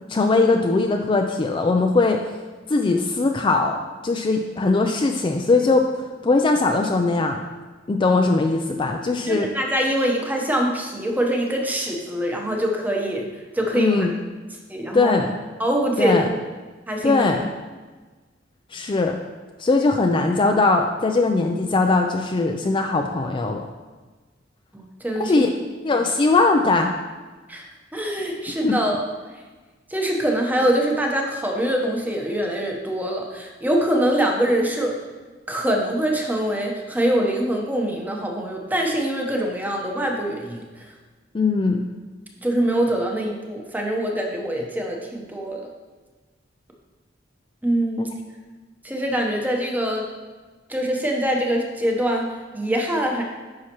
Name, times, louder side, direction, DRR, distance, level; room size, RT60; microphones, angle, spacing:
voice 1, 0.1-2.2 2.7-3.8 4.0-5.9 6.2-7.4 7.9-9.5 13.7-14.1 14.9-15.3 16.0-16.3 17.0-17.4 18.7-19.2 19.6-23.7 25.2-25.5 25.8-26.9 28.6-28.8 41.3-41.8 48.0-48.1, left 3 dB, 25° left, 3 dB, 0.4 m, -20 dB
voice 2, 9.3-14.1 14.7-15.2 15.6-16.2 16.9-17.3 24.7-25.3 26.0-26.1 27.5-27.7 27.9-29.0 29.9-34.9 35.5-40.8 42.4-45.7 47.6-48.1 48.8-50.1 50.7-53.2, right 1 dB, 10° right, 0 dB, 0.9 m, -24 dB
9.5 x 5.6 x 3.0 m, 1.3 s
head